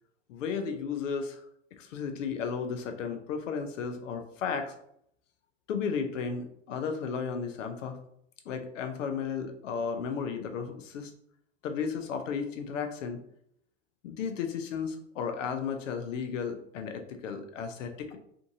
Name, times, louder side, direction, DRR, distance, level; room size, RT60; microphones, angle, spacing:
voice 1, 0.3-1.4 1.8-4.7 5.7-8.0 8.5-11.1 11.6-13.2 14.0-18.2, left 6 dB, 80° left, 6 dB, 0.6 m, -34 dB
2.6 x 2.6 x 2.6 m, 0.70 s
hypercardioid pair, 100°, 37 cm